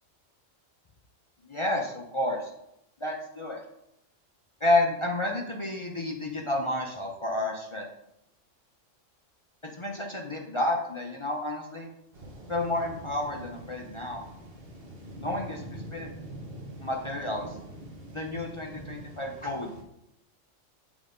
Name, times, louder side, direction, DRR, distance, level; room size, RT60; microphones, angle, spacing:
voice 1, 1.5-2.5 3.0-3.6 4.6-7.9 9.6-11.9 12.5-14.2 15.2-16.1 16.8-17.5 18.1-19.7, left 1 dB, 30° left, 0 dB, 0.6 m, -30 dB
sound 1, 12.1-19.8, right 1 dB, 50° right, 1.3 m, -44 dB
7.3 x 4.1 x 5.1 m, 0.83 s
omnidirectional pair, 1.3 m